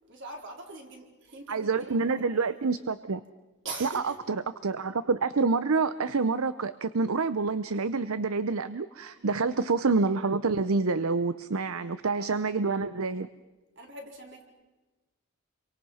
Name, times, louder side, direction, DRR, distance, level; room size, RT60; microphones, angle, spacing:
voice 1, 0.0-2.2 3.6-4.2 9.1-9.4 11.6-12.4 13.8-14.4, right 3 dB, 55° right, 1 dB, 4.2 m, -43 dB
voice 2, 1.5-3.2 3.8-4.4 4.6-13.3, right 4 dB, 70° right, 13 dB, 0.7 m, -27 dB
30.0 x 24.0 x 5.6 m, 1.2 s
head